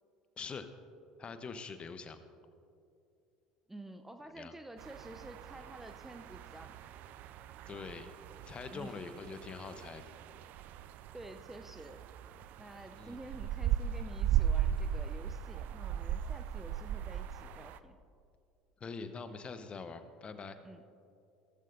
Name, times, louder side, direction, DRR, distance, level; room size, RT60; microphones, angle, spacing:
voice 1, 0.4-0.7 1.2-2.2 4.2-4.5 7.7-8.1 8.5-10.0 13.0-13.2 18.8-20.6, left 5 dB, 30° left, 10 dB, 0.9 m, -44 dB
voice 2, 3.7-6.9 8.7-8.9 11.1-12.0 12.6-18.0 20.6-21.1, right 1 dB, 10° right, 7 dB, 0.6 m, -50 dB
sound 1, 4.8-17.8, right 10 dB, 50° right, 0.4 m, -37 dB
16.0 x 14.0 x 2.6 m, 2.5 s
figure-of-eight pair, 65°, 4 cm